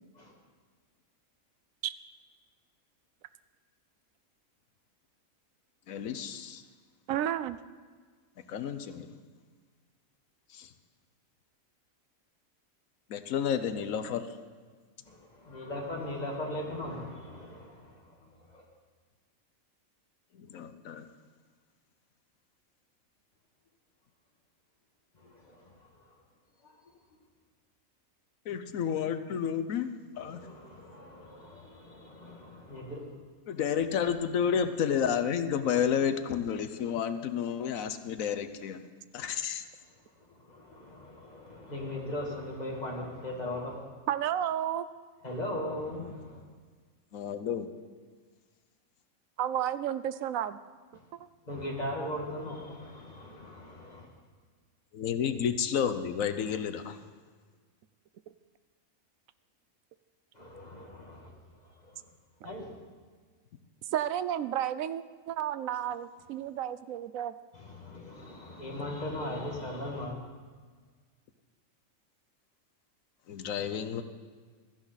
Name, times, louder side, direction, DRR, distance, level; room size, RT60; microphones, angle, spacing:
voice 1, 5.9-6.6 8.5-9.2 10.5-10.7 13.1-14.4 20.3-21.1 28.4-30.4 33.5-38.9 39.1-39.6 47.1-47.7 54.9-57.0 73.3-74.0, left 8 dB, 75° left, 10 dB, 1.2 m, -31 dB
voice 2, 7.1-7.6 44.1-44.9 49.4-50.6 63.9-67.3, right 11 dB, 75° right, 14 dB, 1.0 m, -31 dB
voice 3, 15.1-18.6 25.2-26.0 26.6-26.7 30.2-33.0 40.2-43.7 45.2-46.4 51.5-54.1 60.3-61.3 61.6-62.0 62.4-62.7 67.5-70.1, left 1 dB, 30° left, -2 dB, 2.5 m, -39 dB
16.0 x 13.5 x 4.0 m, 1.5 s
omnidirectional pair, 1.4 m